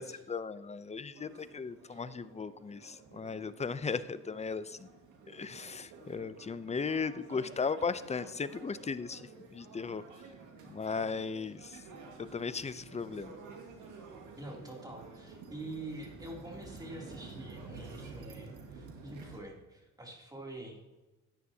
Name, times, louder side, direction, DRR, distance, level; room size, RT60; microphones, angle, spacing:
voice 1, 0.3-4.9 5.3-10.0 10.7-11.8 12.2-13.3, left 5 dB, 20° left, 14 dB, 0.6 m, -37 dB
sound 1, 1.1-19.4, right 4 dB, 85° right, 1.8 m, -51 dB
voice 2, 14.4-20.8, right 1 dB, 10° right, -1 dB, 2.9 m, -46 dB
14.5 x 9.6 x 2.8 m, 1.1 s
cardioid pair, 90°, 30 cm